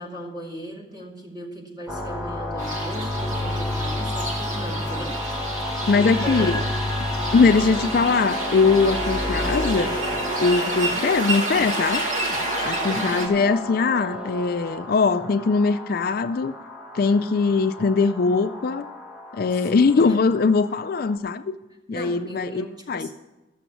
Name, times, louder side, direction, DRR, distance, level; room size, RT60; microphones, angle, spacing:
voice 1, 0.0-5.4 6.0-6.7 7.1-7.7 12.8-13.4 19.6-20.2 21.9-23.1, equal, 20° right, 2.3 m, -37 dB
sound 1, 1.9-21.2, left 1 dB, 5° right, 1.2 m, -31 dB
sound 2, 2.6-13.3, right 2 dB, 40° right, 1.8 m, -30 dB
voice 2, 5.9-6.6 7.3-10.0 10.4-12.1 12.6-16.5 16.9-18.9 19.3-21.6 21.9-23.1, left 4 dB, 50° left, 0.4 m, -21 dB
sound 3, 7.3-13.1, right 3 dB, 75° right, 0.7 m, -37 dB
13.0 x 7.0 x 8.3 m
head